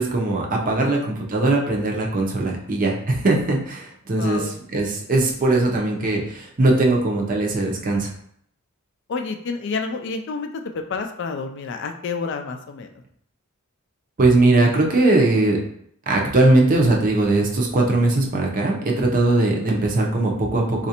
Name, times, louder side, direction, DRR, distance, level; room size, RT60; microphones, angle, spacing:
voice 1, 0.0-8.1 14.2-15.6 16.1-20.9, right 2 dB, 40° right, 0 dB, 0.6 m, -20 dB
voice 2, 0.8-1.1 4.1-4.6 9.1-12.9, left 4 dB, 55° left, 6 dB, 0.4 m, -29 dB
4.1 x 2.5 x 2.8 m, 0.68 s
head